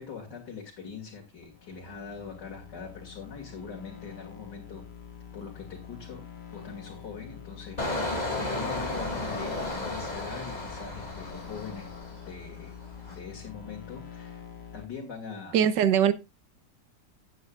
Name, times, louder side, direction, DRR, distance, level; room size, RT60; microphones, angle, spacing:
voice 1, 0.0-4.9 5.3-6.3 6.5-11.9 12.3-12.7 13.1-14.5 14.7-15.7, left 5 dB, 75° left, 2.8 m, -42 dB
sound 1, 1.4-14.9, left 8 dB, 40° left, 1.3 m, -46 dB
Engine, 7.8-12.4 12.8-13.1, left 2 dB, 25° left, 2.5 m, -33 dB
voice 2, 15.5-16.1, right 9 dB, 80° right, 1.5 m, -21 dB
16.0 x 8.7 x 2.4 m
omnidirectional pair, 1.9 m